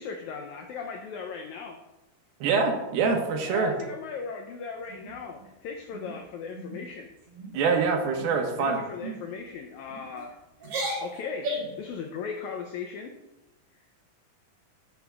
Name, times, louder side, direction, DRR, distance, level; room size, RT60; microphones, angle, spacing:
voice 1, 0.0-1.8 3.4-7.1 8.6-10.4 10.6-10.7 11.0-13.1, left 5 dB, 90° left, 4 dB, 1.6 m, -37 dB
voice 2, 2.4-3.7 7.5-8.8, right 5 dB, 90° right, 3 dB, 3.0 m, -25 dB
sound 1, 4.9-5.5 5.9-6.2 6.5-6.8 7.2-7.5 8.1-8.5 9.0-9.2 9.9-10.3 10.6-11.8, right 1 dB, 70° right, 4.2 m, -35 dB
14.5 x 6.9 x 2.3 m, 1.0 s
omnidirectional pair, 4.2 m